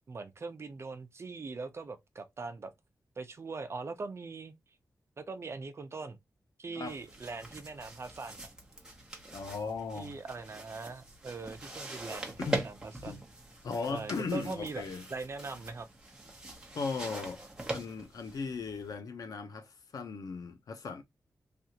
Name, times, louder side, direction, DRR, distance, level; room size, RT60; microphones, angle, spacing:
voice 1, 0.1-2.7 3.2-4.5 5.2-6.2 6.6-8.5 9.9-13.2 13.9-14.8 15.1-15.9, right 4 dB, 45° right, 0.6 m, -41 dB
sound 1, 6.9-19.0, right 1 dB, 10° right, 0.9 m, -43 dB
voice 2, 9.3-10.1 12.4-12.7 13.0-13.2 13.6-15.1 16.7-17.4 17.7-21.0, left 4 dB, 80° left, 0.7 m, -37 dB
3.4 x 2.4 x 2.8 m
wide cardioid pair, 125°, 6 cm